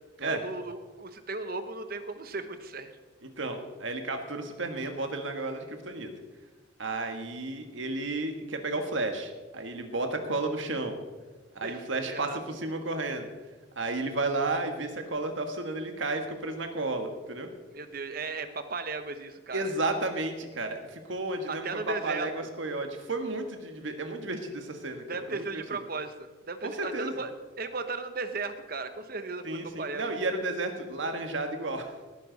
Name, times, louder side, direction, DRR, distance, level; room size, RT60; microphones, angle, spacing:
voice 1, 0.2-2.9 11.6-12.4 17.7-19.7 21.5-22.3 25.1-27.3 27.6-30.1, right 3 dB, 50° right, 9 dB, 1.0 m, -36 dB
voice 2, 3.4-6.1 6.8-11.0 11.5-13.3 13.8-17.5 19.5-25.4 26.6-27.1 29.4-32.0, right 2 dB, 75° right, 5 dB, 1.7 m, -32 dB
18.5 x 9.8 x 4.1 m, 1.3 s
head